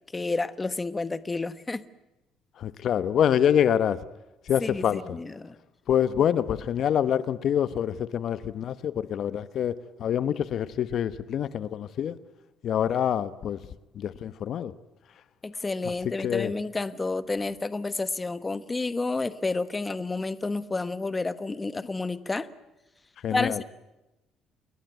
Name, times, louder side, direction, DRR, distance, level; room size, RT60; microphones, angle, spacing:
voice 1, 0.1-1.8 4.6-5.5 15.4-22.5 23.3-23.6, left 3 dB, 20° left, 1.2 m, -30 dB
voice 2, 2.6-4.0 4.5-5.0 5.9-12.2 12.6-13.6 14.0-14.7 16.2-16.5 23.2-23.6, left 9 dB, 55° left, 1.0 m, -26 dB
28.5 x 21.5 x 9.3 m
cardioid pair, 120°, 0 cm